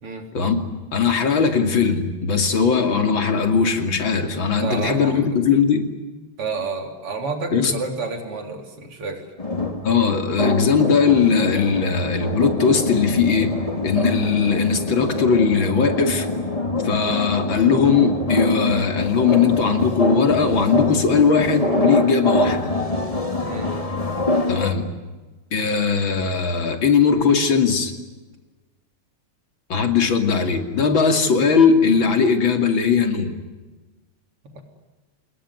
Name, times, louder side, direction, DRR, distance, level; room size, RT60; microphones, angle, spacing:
voice 1, 0.9-5.9 7.5-7.8 9.8-13.6 13.8-16.3 16.8-22.7 24.5-24.9 25.5-27.9 29.7-33.4, left 5 dB, 60° left, 6 dB, 3.5 m, -19 dB
voice 2, 4.6-5.3 6.4-9.3 23.4-23.7 34.4-34.6, right 4 dB, 85° right, 4 dB, 4.6 m, -30 dB
sound 1, 9.4-24.7, left 2 dB, 15° left, 2.3 m, -24 dB
27.0 x 20.5 x 9.7 m, 1.2 s
omnidirectional pair, 2.4 m